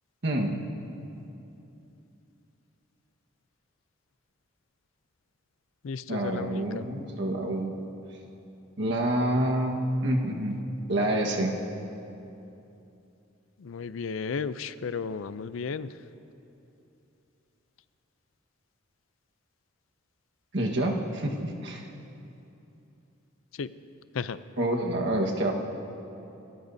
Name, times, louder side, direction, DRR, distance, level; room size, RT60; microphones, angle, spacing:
voice 1, 0.2-0.7 6.1-7.8 8.8-10.6 10.9-11.6 20.5-21.8 24.6-25.5, right 1 dB, 60° right, 1 dB, 1.5 m, -27 dB
voice 2, 5.8-6.9 13.6-15.9 23.5-23.7 24.1-24.4, left 5 dB, 80° left, 14 dB, 0.5 m, -34 dB
30.0 x 14.0 x 2.7 m, 2.8 s
head